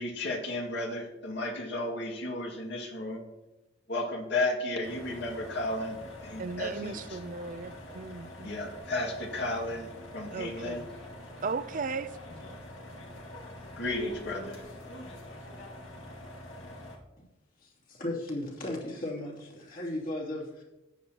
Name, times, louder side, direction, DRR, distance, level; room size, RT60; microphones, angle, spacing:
voice 1, 0.0-3.2 3.9-7.0 8.4-10.8 13.8-14.6, left 2 dB, 65° left, 1 dB, 2.2 m, -33 dB
sound 1, 4.8-17.0, left 1 dB, 85° left, 2.1 m, -45 dB
voice 2, 6.4-8.6 10.3-10.9 11.4-12.1, right 4 dB, 45° right, 13 dB, 0.5 m, -36 dB
voice 3, 17.6-20.6, left 1 dB, 45° left, -3 dB, 3.0 m, -36 dB
14.0 x 10.0 x 3.0 m, 0.99 s
head